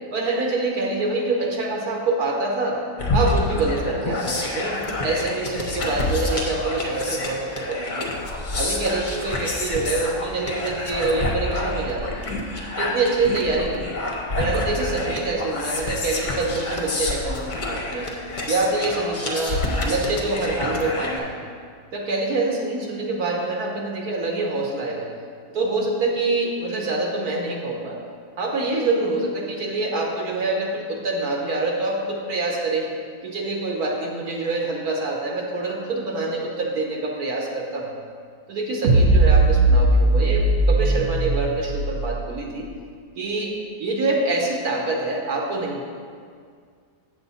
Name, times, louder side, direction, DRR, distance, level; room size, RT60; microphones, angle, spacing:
voice 1, 0.1-2.8 3.1-8.1 8.5-12.1 12.8-14.0 14.4-18.1 18.5-21.4 21.9-25.1 25.5-28.0 28.4-32.9 33.2-37.9 38.5-42.6 43.1-45.8, right 2 dB, 75° right, -1 dB, 1.4 m, -25 dB
sound 1, 3.0-21.2, left 2 dB, 40° left, 0.8 m, -28 dB
sound 2, 38.8-42.3, right 2 dB, 55° right, 0.8 m, -18 dB
8.0 x 7.0 x 4.1 m, 2.1 s
omnidirectional pair, 1.7 m